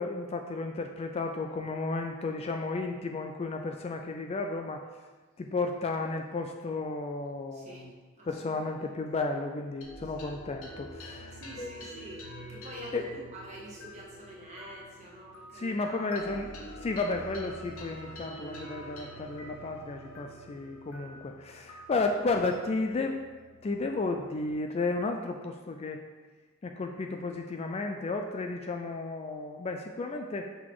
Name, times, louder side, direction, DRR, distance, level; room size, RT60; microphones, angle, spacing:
voice 1, 0.0-4.8 5.4-7.9 8.3-11.7 12.9-13.0 15.6-16.5 16.8-23.2 23.6-26.0 26.6-30.5, left 3 dB, 30° left, 4 dB, 0.3 m, -33 dB
voice 2, 7.5-8.9 10.0-10.3 11.0-16.2, equal, 35° right, -5 dB, 1.6 m, -47 dB
sound 1, 9.8-24.5, equal, 80° left, 1.0 m, -47 dB
5.8 x 3.9 x 4.7 m, 1.3 s
head